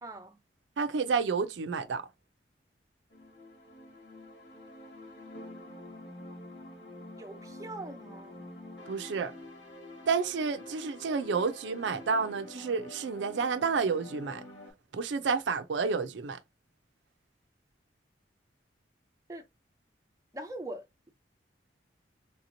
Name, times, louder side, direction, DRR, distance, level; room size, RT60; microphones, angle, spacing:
voice 1, 0.0-0.4 7.2-8.4 19.3-19.4 20.3-20.9, right 1 dB, 15° right, 0.5 m, -42 dB
voice 2, 0.8-2.0 8.9-9.3 10.1-14.4 14.9-16.4, right 5 dB, 80° right, 0.4 m, -30 dB
sound 1, 3.1-14.7, left 1 dB, 80° left, 1.9 m, -47 dB
3.4 x 2.9 x 2.6 m
head